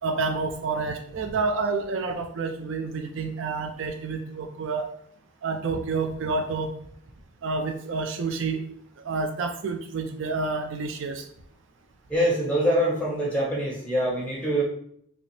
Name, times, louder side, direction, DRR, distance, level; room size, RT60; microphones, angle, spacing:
voice 1, 0.0-4.9 5.4-6.7 7.4-8.6 9.0-11.3, right 4 dB, 60° right, 5 dB, 0.4 m, -29 dB
voice 2, 12.1-14.6, equal, 5° left, -5 dB, 1.1 m, -24 dB
5.0 x 2.0 x 3.2 m, 0.67 s
head